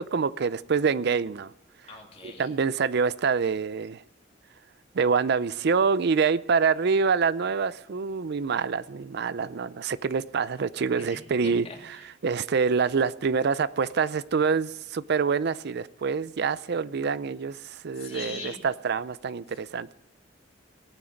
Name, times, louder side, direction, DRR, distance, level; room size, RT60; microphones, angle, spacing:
voice 1, 0.0-1.5 2.2-4.0 4.9-19.9, right 5 dB, 60° right, 0.4 m, -26 dB
voice 2, 1.9-2.5 10.9-12.0 17.9-18.6, left 3 dB, 35° left, 2.9 m, -41 dB
18.0 x 9.1 x 5.1 m
head